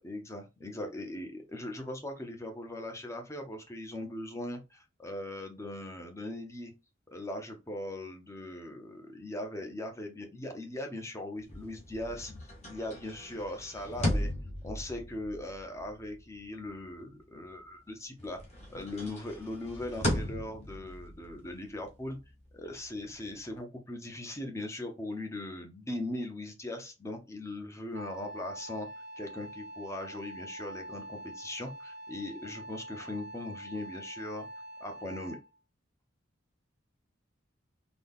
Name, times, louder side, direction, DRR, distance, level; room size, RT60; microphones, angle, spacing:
voice 1, 0.0-6.7 7.1-14.3 14.6-18.4 18.7-22.2 22.5-28.9 29.2-34.5 34.8-35.4, left 1 dB, 15° left, 4 dB, 0.8 m, -40 dB
sound 1, 11.4-17.9 18.2-23.6, left 1 dB, 35° left, 1.1 m, -38 dB
Wind instrument woodwind instrument, 27.9-35.6, right 1 dB, 50° right, 0.7 m, -45 dB
4.0 x 2.3 x 3.5 m, 0.26 s
head